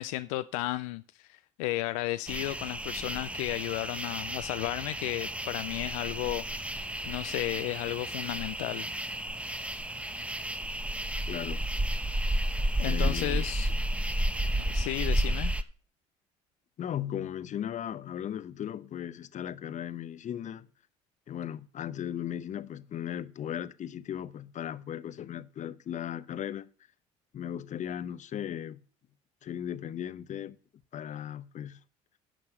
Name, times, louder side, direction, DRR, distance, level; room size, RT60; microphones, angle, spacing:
voice 1, 0.0-8.9 12.8-13.7 14.7-15.6, left 17 dB, 80° left, 0.5 m, -34 dB
sound 1, 2.3-15.6, right 1 dB, 5° right, 0.9 m, -32 dB
voice 2, 11.3-11.6 12.8-13.5 16.8-20.7 21.3-26.7 27.3-28.8 29.4-30.6 30.9-31.8, left 10 dB, 45° left, 0.8 m, -37 dB
11.5 x 5.9 x 7.9 m
hypercardioid pair, 65°, 17 cm